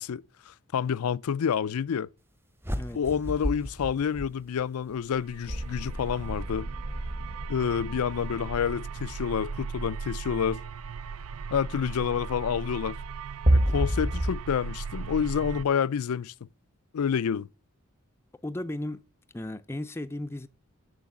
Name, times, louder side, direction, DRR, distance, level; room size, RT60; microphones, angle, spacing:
voice 1, 0.0-2.1 2.9-6.7 7.5-10.6 11.5-13.0 13.5-16.3 16.9-17.5, left 7 dB, 85° left, 0.4 m, -28 dB
sound 1, 2.6-5.0, equal, 10° right, 0.8 m, -35 dB
sound 2, 5.0-15.6, right 5 dB, 80° right, 0.4 m, -38 dB
sound 3, 5.5-11.0 13.5-14.3, right 1 dB, 35° right, 1.0 m, -29 dB
voice 2, 18.4-19.0 19.3-20.5, left 1 dB, 10° left, 0.4 m, -35 dB
7.7 x 7.0 x 7.1 m
head